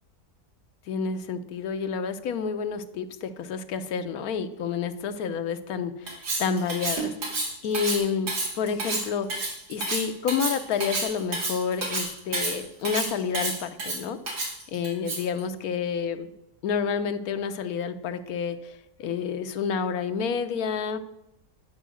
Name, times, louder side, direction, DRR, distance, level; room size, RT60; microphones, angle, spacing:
voice 1, 0.9-7.4 7.6-8.3 8.6-16.3 16.6-21.0, left 6 dB, 70° left, 9 dB, 1.1 m, -29 dB
Cutlery silverware, 6.1-15.4, right 2 dB, 80° right, 2.4 m, -30 dB
10.0 x 4.5 x 6.2 m, 0.86 s
omnidirectional pair, 1.7 m